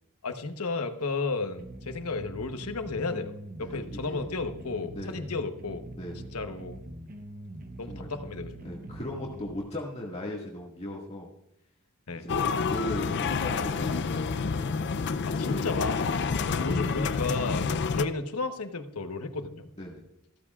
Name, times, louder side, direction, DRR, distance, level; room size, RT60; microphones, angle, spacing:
voice 1, 0.2-3.3 3.6-5.8 6.3-6.8 7.8-8.6 12.1-12.3 15.3-19.7, left 3 dB, 85° left, 7 dB, 1.0 m, -33 dB
sound 1, 1.6-9.6, right 1 dB, 40° right, 1.0 m, -43 dB
voice 2, 3.6-4.3 4.9-5.3 6.0-6.3 7.9-8.1 8.6-11.3 12.1-12.4 12.7-14.7 16.6-17.1 19.8-20.0, left 1 dB, 30° left, -3 dB, 1.9 m, -38 dB
sound 2, 12.3-18.0, left 5 dB, 55° left, 0.5 m, -28 dB
14.5 x 13.5 x 2.4 m, 0.79 s
head